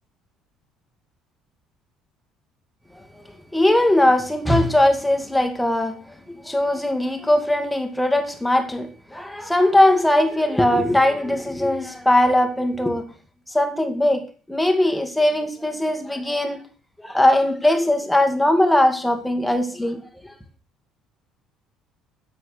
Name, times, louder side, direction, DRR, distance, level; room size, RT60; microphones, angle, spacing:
voice 1, 3.5-13.1 13.5-16.6 17.0-20.3, left 1 dB, 5° left, 2.3 m, -20 dB
11.5 x 8.3 x 6.7 m
cardioid pair, 120°, 0 cm